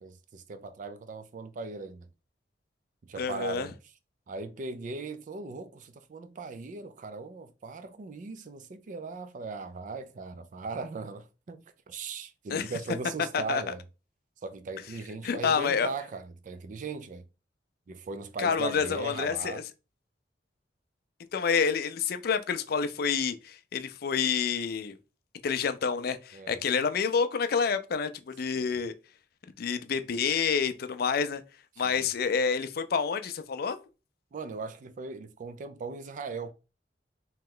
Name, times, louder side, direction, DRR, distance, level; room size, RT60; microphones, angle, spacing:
voice 1, 0.0-2.1 3.1-3.7 4.3-13.8 14.4-17.2 17.9-19.6 26.3-26.6 28.6-28.7 31.8-32.1 34.3-36.5, right 4 dB, 45° right, 0.4 m, -39 dB
voice 2, 3.2-3.7 12.5-12.7 13.3-13.7 15.2-15.9 18.4-19.6 21.3-24.9 25.4-28.9 29.6-31.4 31.8-33.8, left 6 dB, 60° left, 0.4 m, -28 dB
3.2 x 2.9 x 3.7 m
head